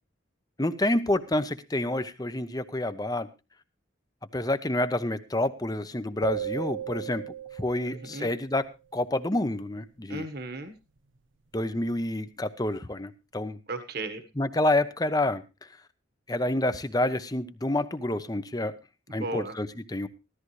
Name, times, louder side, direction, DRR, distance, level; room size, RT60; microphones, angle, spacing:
voice 1, 0.6-3.3 4.3-8.7 8.9-10.3 11.5-13.6 14.4-15.4 16.3-18.7 19.1-20.1, left 1 dB, 20° left, 12 dB, 0.8 m, -28 dB
sound 1, 6.2-8.5, right 10 dB, 85° right, 0.7 m, -36 dB
voice 2, 7.9-8.4 10.1-10.7 13.7-14.2 19.1-19.5, right 2 dB, 55° right, 9 dB, 1.5 m, -35 dB
15.5 x 13.5 x 3.2 m, 0.27 s
head